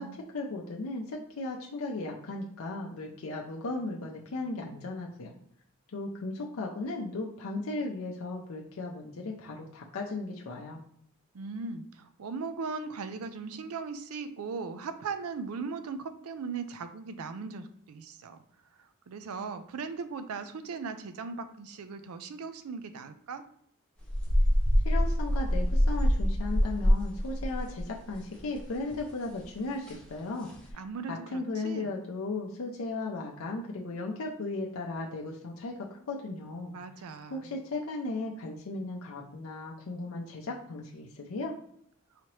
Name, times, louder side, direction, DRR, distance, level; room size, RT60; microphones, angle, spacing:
voice 1, 0.3-5.3 5.9-10.8 24.8-30.8 31.1-36.8 37.3-41.5, left 2 dB, 75° left, -1 dB, 0.5 m, -36 dB
voice 2, 11.3-18.4 18.8-23.4 30.7-31.9 36.7-37.5, right 4 dB, 85° right, 9 dB, 0.4 m, -38 dB
sound 1, 24.0-28.6 28.9-29.0 29.4-29.5 29.9-30.0 30.5-30.7, equal, 5° left, 0.7 m, -25 dB
4.8 x 2.9 x 3.1 m, 0.69 s
head